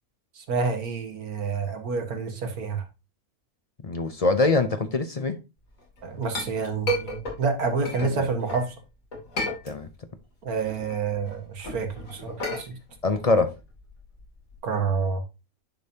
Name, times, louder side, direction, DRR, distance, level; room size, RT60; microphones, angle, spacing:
voice 1, 0.4-2.8 6.0-8.8 10.4-12.8 14.6-15.2, right 5 dB, 85° right, 1.9 m, -28 dB
voice 2, 3.8-5.4 8.0-8.3 9.6-9.9 13.0-13.5, left 3 dB, 40° left, 0.5 m, -23 dB
Chink clink, 5.8-8.7 9.1-10.2 10.5-14.6, equal, 65° left, 3.2 m, -33 dB
10.0 x 5.3 x 2.7 m
omnidirectional pair, 1.5 m